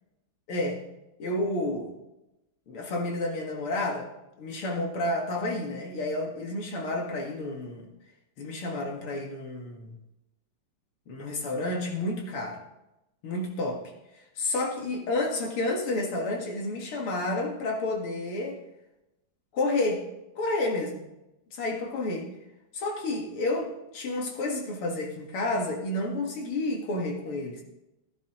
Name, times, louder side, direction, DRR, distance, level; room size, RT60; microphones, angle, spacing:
voice 1, 0.5-0.8 1.2-1.9 2.7-4.1 4.4-7.9 8.4-10.0 11.1-12.6 13.2-13.8 14.4-18.6 19.5-20.0 20.4-21.1 21.6-22.3 22.7-27.6, left 2 dB, 75° left, 1 dB, 2.7 m, -30 dB
14.5 x 11.5 x 3.1 m, 0.93 s
omnidirectional pair, 2.4 m